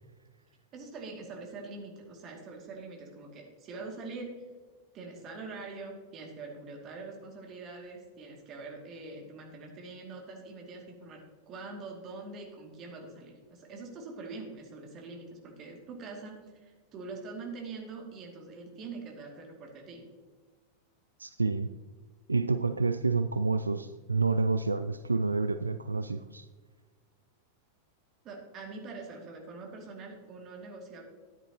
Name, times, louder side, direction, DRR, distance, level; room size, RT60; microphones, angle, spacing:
voice 1, 0.7-4.4 4.9-20.0 28.2-31.0, right 3 dB, 35° right, 1 dB, 2.4 m, -44 dB
voice 2, 21.2-21.7 22.3-26.5, right 3 dB, 80° right, 11 dB, 0.3 m, -29 dB
13.5 x 10.0 x 3.0 m, 1.4 s
figure-of-eight pair, 90°, 0 cm